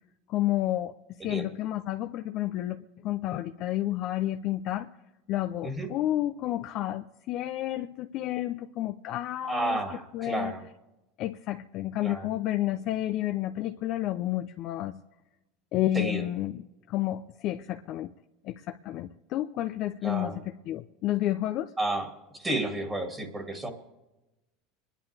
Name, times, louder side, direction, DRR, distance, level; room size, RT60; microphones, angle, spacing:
voice 1, 0.3-0.9 1.2-4.9 5.3-9.8 10.1-10.5 11.2-15.0 15.7-18.1 18.4-21.7, left 14 dB, 55° left, 0.6 m, -30 dB
voice 2, 9.5-10.6 12.0-12.3 15.9-16.2 20.0-20.3 21.8-22.1 22.3-23.7, right 2 dB, 15° right, 2.3 m, -31 dB
26.0 x 11.0 x 3.4 m
supercardioid pair, 110°, 0 cm